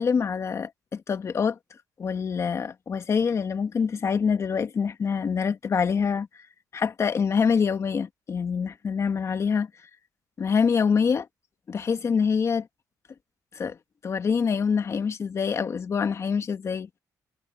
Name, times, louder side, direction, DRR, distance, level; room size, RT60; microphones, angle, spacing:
voice 1, 0.0-1.6 2.0-6.3 6.7-9.7 10.4-11.3 11.7-12.7 13.5-13.8 14.0-16.9, left 6 dB, 40° left, 1.7 m, -25 dB
cardioid pair, 110°, 7 cm